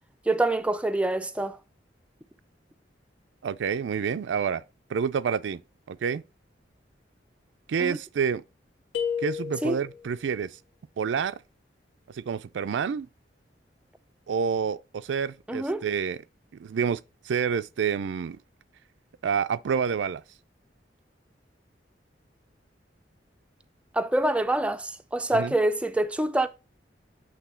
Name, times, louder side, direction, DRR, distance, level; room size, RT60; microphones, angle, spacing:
voice 1, 0.3-1.6 7.8-8.0 9.6-9.8 15.5-15.8 23.9-26.5, right 1 dB, 5° right, 0.4 m, -26 dB
voice 2, 3.4-4.6 4.9-5.6 5.9-6.2 7.7-8.4 9.2-10.5 11.0-11.4 12.1-13.1 14.3-16.2 16.6-17.0 17.3-18.4 19.2-20.2 25.3-25.5, right 6 dB, 75° right, 0.4 m, -28 dB
sound 1, 8.9-10.1, left 7 dB, 70° left, 1.5 m, -31 dB
8.2 x 3.2 x 4.3 m
head